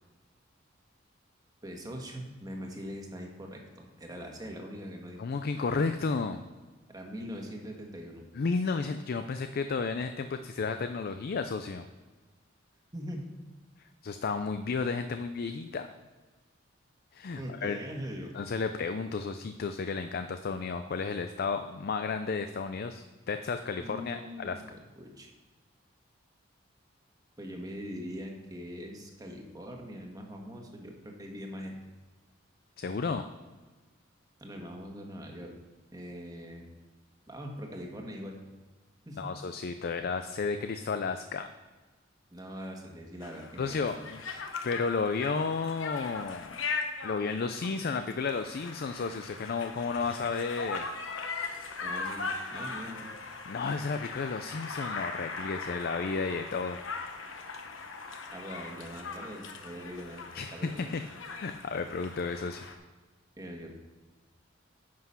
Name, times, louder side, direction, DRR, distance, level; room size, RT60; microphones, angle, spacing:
voice 1, 1.6-5.3 6.9-8.2 12.9-13.3 17.4-18.3 23.8-25.3 27.4-31.8 34.4-35.5 35.9-36.7 37.3-38.3 39.1-39.3 42.3-43.9 51.8-53.1 58.3-60.2 60.5-60.9 63.4-63.7, equal, 20° right, 1 dB, 1.5 m, -42 dB
voice 2, 5.2-6.4 8.3-11.9 14.0-15.9 17.1-17.8 18.3-24.6 32.8-33.2 39.2-41.5 43.6-44.2 44.6-46.6 47.0-50.9 53.5-56.8 60.3-61.0 61.4-62.7, left 4 dB, 50° left, 8 dB, 0.4 m, -32 dB
Conversation, 43.2-62.8, left 4 dB, 80° left, 1.0 m, -40 dB
9.7 x 5.9 x 5.7 m, 1.3 s
head